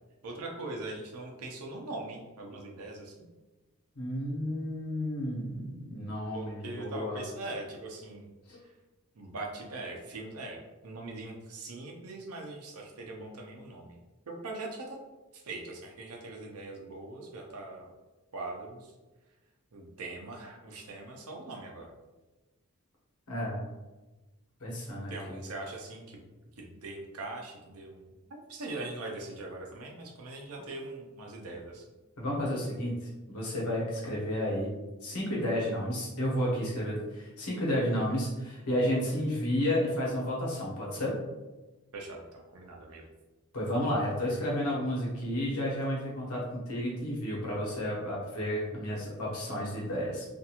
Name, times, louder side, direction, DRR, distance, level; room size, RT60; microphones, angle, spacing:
voice 1, 0.2-3.3 6.3-8.3 8.6-8.7 9.2-14.0 14.3-15.0 15.3-17.9 18.3-18.9 19.7-21.9 25.1-26.2 26.6-31.8 41.9-43.0, right 2 dB, 80° right, 0 dB, 0.6 m, -41 dB
voice 2, 3.9-7.2 8.5-8.6 23.3-23.6 24.6-25.4 32.2-34.7 35.0-41.2 43.5-50.3, equal, 85° left, -5 dB, 1.0 m, -32 dB
2.5 x 2.4 x 2.8 m, 1.1 s
head